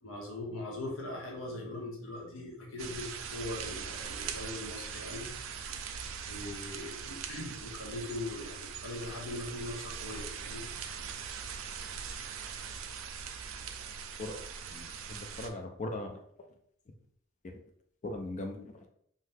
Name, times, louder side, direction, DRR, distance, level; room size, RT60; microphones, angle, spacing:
voice 1, 0.0-5.3 6.3-10.9, left 2 dB, 80° left, -1 dB, 0.9 m, -41 dB
sound 1, 2.8-15.5, right 6 dB, 75° right, 0.3 m, -41 dB
voice 2, 14.7-16.2 17.4-17.5 18.0-18.7, left 2 dB, 35° left, 4 dB, 0.4 m, -39 dB
2.7 x 2.2 x 3.4 m, 0.67 s
head